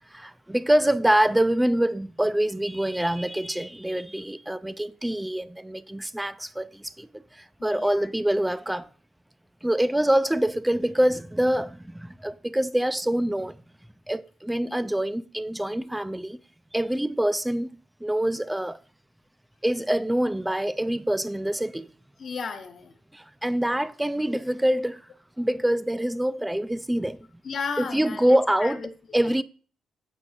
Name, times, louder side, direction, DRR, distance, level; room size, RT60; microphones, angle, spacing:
voice 1, 0.1-8.9 9.6-13.6 14.1-16.4 16.7-17.7 18.0-18.8 19.6-21.9 23.1-25.0 25.4-27.2 27.9-28.8 29.1-29.4, right 1 dB, 5° right, 0.4 m, -25 dB
voice 2, 7.6-8.1 14.6-14.9 22.2-22.9 27.4-29.4, left 5 dB, 50° left, 1.0 m, -35 dB
8.1 x 4.9 x 4.1 m
cardioid pair, 90°, 0 cm